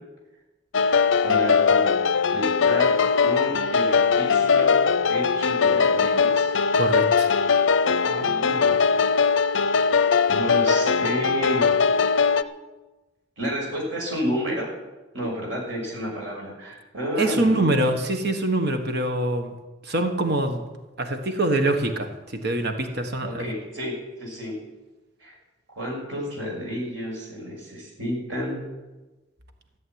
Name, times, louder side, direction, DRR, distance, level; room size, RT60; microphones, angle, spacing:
sound 1, 0.7-12.4, left 5 dB, 85° left, 0.6 m, -20 dB
voice 1, 1.2-1.9 2.3-2.9 3.2-4.7 5.1-6.5 8.0-8.9 10.3-11.7 13.4-14.7 15.1-17.9 23.2-24.6 25.2-25.4 25.7-28.6, equal, 85° right, -1 dB, 6.2 m, -30 dB
voice 2, 6.7-7.3 17.2-19.5 19.8-20.6 21.0-23.5, right 2 dB, 60° right, 6 dB, 1.4 m, -24 dB
14.5 x 7.9 x 9.4 m, 1.1 s
head